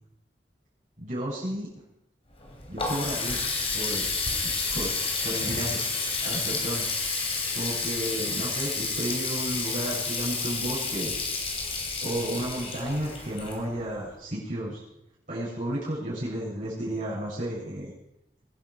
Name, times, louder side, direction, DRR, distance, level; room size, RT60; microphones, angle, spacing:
voice 1, 1.0-1.7 2.7-3.4 3.7-4.1 4.6-4.9 5.2-5.8 6.2-6.9 7.5-11.1 12.0-14.8 15.3-17.9, right 1 dB, 45° right, -9 dB, 6.9 m, -32 dB
Water tap faucet, 2.3-14.0, left 4 dB, 35° left, 3.1 m, -30 dB
22.5 x 10.5 x 4.8 m, 0.82 s
head